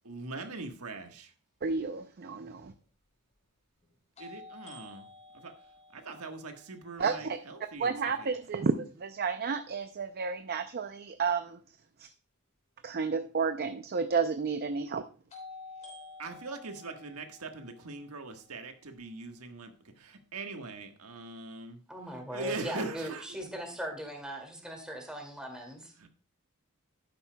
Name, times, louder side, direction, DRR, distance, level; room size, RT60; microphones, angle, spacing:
voice 1, 0.0-1.3 4.2-5.1 5.3-5.5 5.9-8.4 16.2-21.8 22.2-23.3 26.0-26.1, right 3 dB, 90° right, 5 dB, 1.4 m, -41 dB
voice 2, 1.6-2.7 7.0-7.4 7.8-11.6 12.8-15.0, right 5 dB, 45° right, 9 dB, 0.5 m, -31 dB
sound 1, 2.2-2.3 4.2-8.1 15.3-19.3, left 3 dB, 35° left, 3.3 m, -52 dB
voice 3, 21.9-25.9, equal, 5° right, 2 dB, 2.3 m, -39 dB
11.5 x 9.7 x 2.2 m, 0.38 s
head